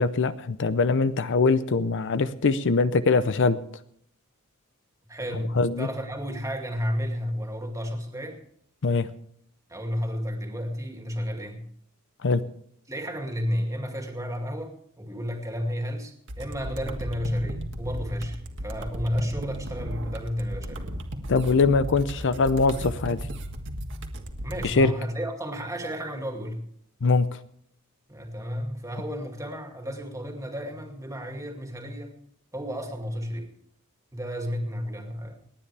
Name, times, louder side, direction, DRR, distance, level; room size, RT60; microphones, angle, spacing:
voice 1, 0.0-3.6 5.6-5.9 8.8-9.1 12.2-12.4 21.3-23.2 24.6-24.9 27.0-27.2, left 4 dB, 55° left, 13 dB, 0.6 m, -22 dB
voice 2, 5.1-8.4 9.7-11.6 12.9-20.9 24.4-26.6 28.1-32.1 32.5-33.5 34.1-35.4, equal, 15° right, 4 dB, 2.3 m, -32 dB
sound 1, 16.3-24.7, equal, 55° right, 1.6 m, -35 dB
29.5 x 9.9 x 3.4 m, 0.65 s
head